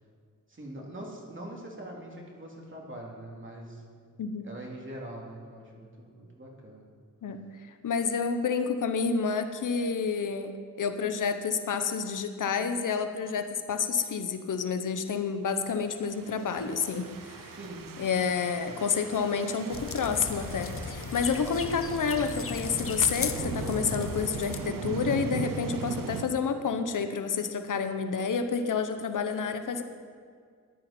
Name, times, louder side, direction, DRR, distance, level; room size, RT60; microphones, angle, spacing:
voice 1, 0.5-3.8 4.4-6.8 17.5-17.8, right 1 dB, 35° right, -2 dB, 2.9 m, -43 dB
voice 2, 7.6-10.5 10.8-17.6 18.0-29.8, left 5 dB, 70° left, 8 dB, 0.9 m, -29 dB
sound 1, 15.9-26.2, right 6 dB, 80° right, 0.9 m, -39 dB
sound 2, 19.7-24.7, left 6 dB, 40° left, 0.7 m, -37 dB
14.0 x 10.5 x 4.4 m, 2.1 s
cardioid pair, 80°, 33 cm